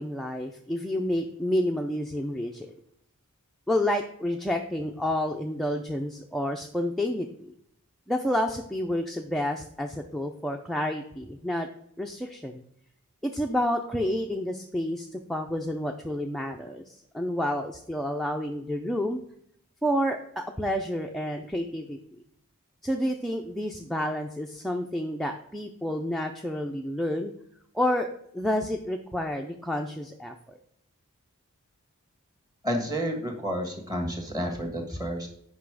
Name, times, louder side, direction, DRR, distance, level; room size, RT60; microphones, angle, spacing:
voice 1, 0.0-2.7 3.7-7.5 8.1-11.7 12.0-12.6 13.2-19.2 19.8-22.0 22.8-27.3 27.7-28.1 28.3-30.6, left 1 dB, ahead, 2 dB, 0.4 m, -29 dB
voice 2, 32.6-35.3, equal, 15° right, 2 dB, 1.6 m, -30 dB
8.2 x 5.6 x 4.8 m, 0.71 s
head